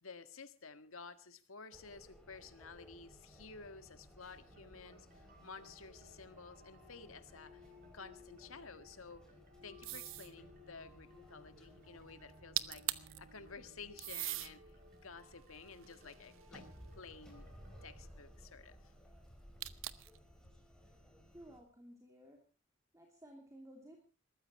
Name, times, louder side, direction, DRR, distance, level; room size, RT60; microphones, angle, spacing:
voice 1, 0.0-7.6 7.9-9.3 9.6-12.9 13.2-14.6 14.9-16.7 16.9-17.5 17.8-18.8, left 4 dB, 75° left, 1.6 m, -53 dB
sound 1, 1.7-21.6, equal, 5° left, 4.8 m, -60 dB
sound 2, 4.5-18.9, left 1 dB, 45° right, 4.4 m, -62 dB
sound 3, 9.8-10.3 12.3-12.4 12.6-13.2 14.0-14.5 15.2-16.7 19.6-20.2, right 15 dB, 65° right, 0.9 m, -40 dB
voice 2, 21.3-22.4 22.9-24.0, right 1 dB, 15° right, 2.9 m, -56 dB
21.0 x 14.0 x 4.3 m
head